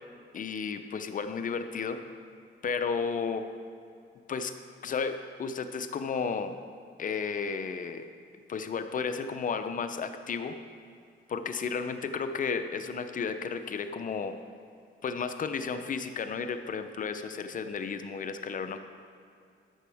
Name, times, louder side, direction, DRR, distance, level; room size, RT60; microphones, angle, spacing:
voice 1, 0.3-2.0 2.6-3.5 4.3-4.5 4.8-6.6 7.0-8.0 8.5-10.6 11.3-14.4 15.0-18.8, left 5 dB, 40° left, 8 dB, 0.6 m, -33 dB
13.0 x 6.1 x 3.5 m, 2.4 s
cardioid pair, 90°, 20 cm